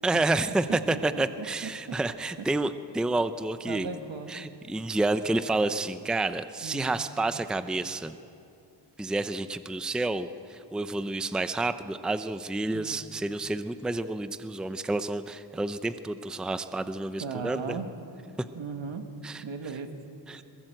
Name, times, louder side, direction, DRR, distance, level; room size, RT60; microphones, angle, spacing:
voice 1, 0.0-3.9 4.3-8.2 9.0-17.8 19.2-19.4 20.3-20.4, right 2 dB, ahead, 11 dB, 0.5 m, -29 dB
voice 2, 0.7-1.2 1.6-1.7 3.7-4.3 6.6-6.9 12.7-13.0 17.2-17.9 18.5-19.0 19.4-19.9, right 5 dB, 80° right, 6 dB, 1.9 m, -36 dB
22.0 x 21.5 x 7.8 m, 2.8 s
wide cardioid pair, 160°, 45 cm